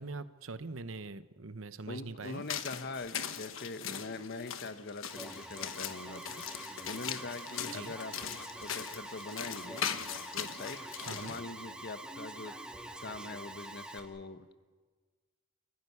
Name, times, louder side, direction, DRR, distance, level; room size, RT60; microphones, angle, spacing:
voice 1, 0.0-2.5 7.6-7.9 11.1-11.3, right 3 dB, 85° right, 12 dB, 0.9 m, -43 dB
voice 2, 1.9-6.4 6.8-8.1 8.6-9.8 10.3-10.8 11.1-12.5 13.0-14.5, left 3 dB, 55° left, 10 dB, 1.2 m, -43 dB
sound 1, 2.2-11.4, left 8 dB, 90° left, 1.2 m, -40 dB
Alarm, 5.1-14.0, right 1 dB, 5° right, 2.2 m, -45 dB
28.5 x 15.5 x 9.7 m, 1.5 s
head